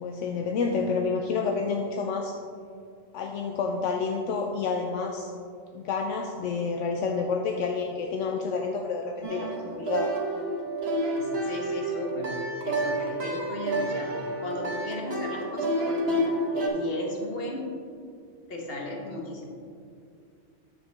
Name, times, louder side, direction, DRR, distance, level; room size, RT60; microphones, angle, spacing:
voice 1, 0.0-2.3 3.1-5.3 5.7-10.1, left 4 dB, 75° left, 2 dB, 0.9 m, -29 dB
sound 1, 9.2-16.7, right 1 dB, 55° right, 1.4 m, -29 dB
voice 2, 11.1-12.4 12.6-17.7 18.5-19.5, left 1 dB, 50° left, 0 dB, 1.4 m, -35 dB
9.6 x 7.3 x 3.3 m, 2.3 s
omnidirectional pair, 1.3 m